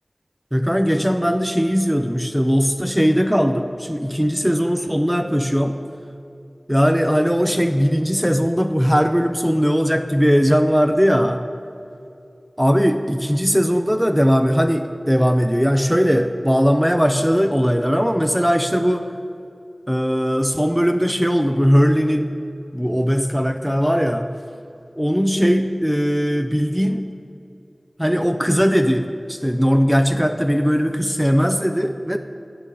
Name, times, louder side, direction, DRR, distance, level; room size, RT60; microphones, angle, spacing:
voice 1, 0.5-5.8 6.7-11.5 12.6-19.1 19.9-22.4 22.7-24.3 25.0-27.1 28.0-32.2, equal, 5° right, 7 dB, 0.5 m, -19 dB
10.5 x 7.5 x 5.6 m, 2.5 s
wide cardioid pair, 45°, 0 cm